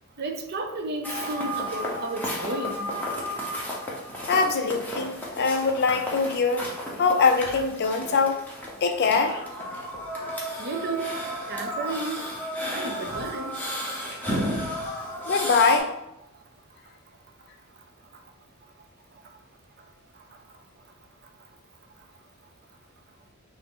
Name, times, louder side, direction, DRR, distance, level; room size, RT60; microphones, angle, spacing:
voice 1, 0.2-2.9 10.6-11.1 11.5-12.2 12.7-13.5, right 2 dB, 45° right, 3 dB, 0.6 m, -32 dB
sound 1, 1.0-15.8, equal, 10° left, 0.9 m, -33 dB
voice 2, 4.3-6.6 7.0-8.4 8.8-9.4 15.3-15.9, left 4 dB, 50° left, 6 dB, 0.5 m, -22 dB
6.0 x 2.0 x 3.7 m, 0.87 s
head